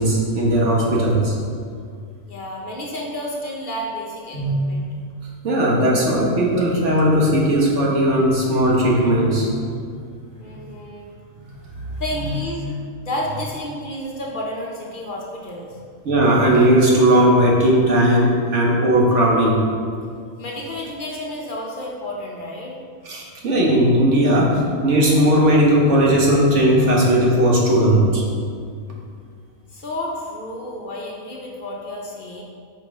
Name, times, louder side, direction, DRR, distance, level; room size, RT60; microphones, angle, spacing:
voice 1, 0.0-1.3 4.3-4.6 5.4-9.6 11.4-11.5 12.2-12.3 16.0-19.6 23.0-28.2, right 1 dB, 60° right, -3 dB, 1.4 m, -17 dB
voice 2, 2.3-4.9 10.4-11.1 12.0-15.8 20.4-22.8 29.7-32.4, left 1 dB, 45° left, -2 dB, 0.7 m, -31 dB
5.7 x 5.7 x 3.5 m, 2.2 s
omnidirectional pair, 1.4 m